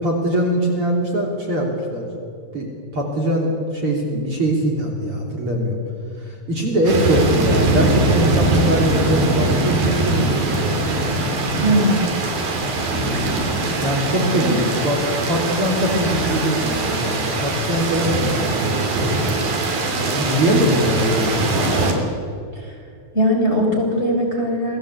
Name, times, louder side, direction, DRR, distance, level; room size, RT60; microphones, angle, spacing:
voice 1, 0.0-2.1 2.5-2.7 2.9-5.8 6.2-10.9 13.8-15.0 15.3-19.2 20.2-21.5, equal, 40° right, -1 dB, 3.8 m, -22 dB
sound 1, 6.9-21.9, right 2 dB, 80° right, 5.1 m, -21 dB
voice 2, 11.6-12.0 14.3-14.6 22.5-22.7 23.1-24.8, equal, 15° left, 0 dB, 4.9 m, -20 dB
28.0 x 20.0 x 8.4 m, 2.5 s
omnidirectional pair, 4.1 m